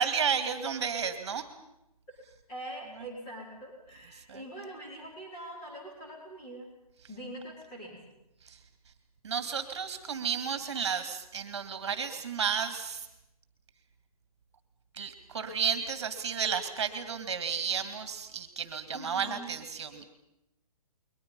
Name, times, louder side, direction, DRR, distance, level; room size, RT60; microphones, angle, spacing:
voice 1, 0.0-1.5 4.3-4.4 8.4-8.6 9.2-13.1 14.9-20.0, right 7 dB, 45° right, 9 dB, 2.3 m, -32 dB
voice 2, 2.5-6.7 7.1-8.0 18.9-19.5, right 1 dB, 15° left, -4 dB, 4.8 m, -43 dB
29.5 x 22.5 x 5.5 m, 0.85 s
hypercardioid pair, 180°, 20 cm